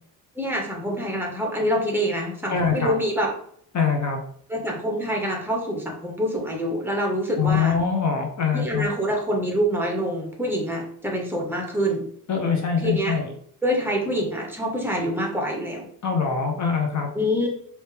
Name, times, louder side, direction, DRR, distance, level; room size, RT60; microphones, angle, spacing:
voice 1, 0.3-3.3 4.5-7.8 8.5-12.0 12.8-13.2 13.6-15.9 17.1-17.5, equal, 5° right, 0 dB, 1.4 m, -26 dB
voice 2, 2.5-2.9 3.7-4.2 7.4-8.9 12.3-13.3 16.0-17.1, left 6 dB, 45° left, 3 dB, 0.9 m, -23 dB
4.4 x 2.9 x 3.4 m, 0.63 s
cardioid pair, 85°, 39 cm